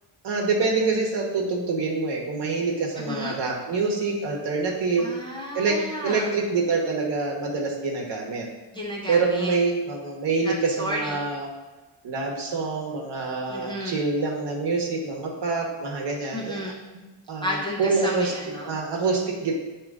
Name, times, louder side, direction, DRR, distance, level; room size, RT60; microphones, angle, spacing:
voice 1, 0.2-5.1 5.5-8.5 9.1-11.5 12.0-16.6 17.3-18.3 18.6-19.5, right 4 dB, 55° right, 0 dB, 1.2 m, -26 dB
voice 2, 3.0-3.3 5.0-6.3 8.7-9.6 10.4-11.2 13.5-14.0 16.3-16.8 17.4-18.7, equal, 10° left, -4 dB, 0.5 m, -32 dB
8.9 x 3.0 x 3.6 m, 1.2 s
wide cardioid pair, 180°, 50 cm